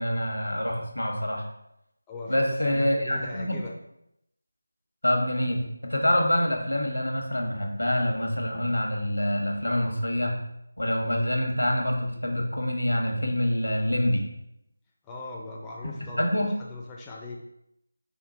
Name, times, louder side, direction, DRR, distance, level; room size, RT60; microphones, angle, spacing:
voice 1, 0.0-1.4 2.3-3.6 5.0-10.3 10.8-14.2 15.8-16.5, left 1 dB, 80° left, 2 dB, 1.1 m, -26 dB
voice 2, 2.1-3.7 15.0-16.3 16.6-17.4, left 2 dB, 10° left, -3 dB, 0.4 m, -40 dB
5.1 x 2.5 x 3.9 m, 0.80 s
figure-of-eight pair, 165°, 0 cm